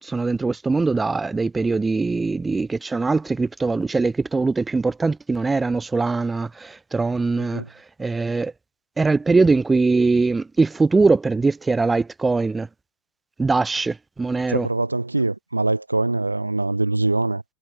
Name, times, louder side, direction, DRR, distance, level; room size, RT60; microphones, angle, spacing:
voice 1, 0.0-7.6 8.0-8.5 9.0-12.7 13.4-14.7, right 3 dB, 10° right, 3.9 m, -21 dB
voice 2, 7.4-7.7 14.5-17.4, right 2 dB, 85° right, 1.8 m, -23 dB
figure-of-eight pair, 90°, 0 cm